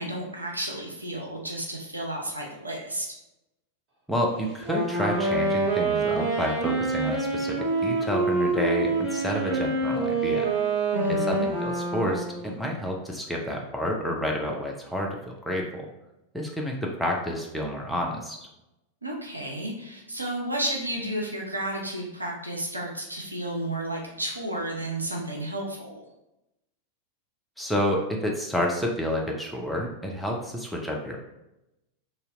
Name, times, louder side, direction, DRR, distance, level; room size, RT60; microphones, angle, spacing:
voice 1, 0.0-3.1 10.9-11.5 19.0-26.0, right 1 dB, 85° right, -1 dB, 0.6 m, -32 dB
voice 2, 4.1-7.5 7.8-10.5 11.2-15.8 16.3-18.4 27.6-31.2, left 1 dB, ahead, -1 dB, 0.5 m, -29 dB
Wind instrument woodwind instrument, 4.6-12.5, right 3 dB, 40° right, 1.0 m, -26 dB
2.7 x 2.1 x 3.7 m, 0.90 s
figure-of-eight pair, 90°, 0 cm